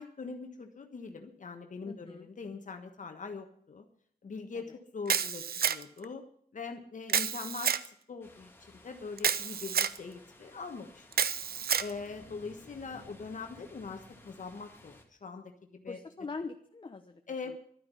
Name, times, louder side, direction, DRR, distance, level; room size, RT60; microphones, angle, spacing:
voice 1, 0.0-3.9 4.2-6.2 6.5-7.7 8.1-11.0 11.8-16.0 17.3-17.6, left 4 dB, 50° left, 5 dB, 1.4 m, -42 dB
voice 2, 1.9-2.3 4.5-4.6 12.2-12.4 15.9-17.6, left 4 dB, 30° left, 6 dB, 0.9 m, -43 dB
Camera, 5.1-6.0 7.1-7.9 9.2-10.0 11.1-11.9, right 7 dB, 70° right, 0.7 m, -29 dB
sound 1, 8.2-15.0, left 1 dB, 15° left, 2.4 m, -56 dB
12.0 x 9.6 x 9.6 m, 0.62 s
wide cardioid pair, 125°, 16 cm